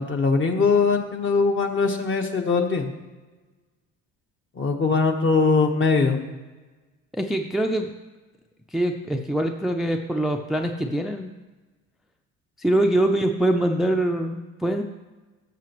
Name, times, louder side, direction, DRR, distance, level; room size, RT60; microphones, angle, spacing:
voice 1, 0.0-2.9 4.6-6.2, left 4 dB, 40° left, 4 dB, 1.3 m, -21 dB
voice 2, 7.1-7.9 8.7-11.4 12.6-14.8, right 1 dB, ahead, 4 dB, 0.5 m, -24 dB
13.5 x 6.7 x 3.1 m, 1.2 s
cardioid pair, 95°, 30 cm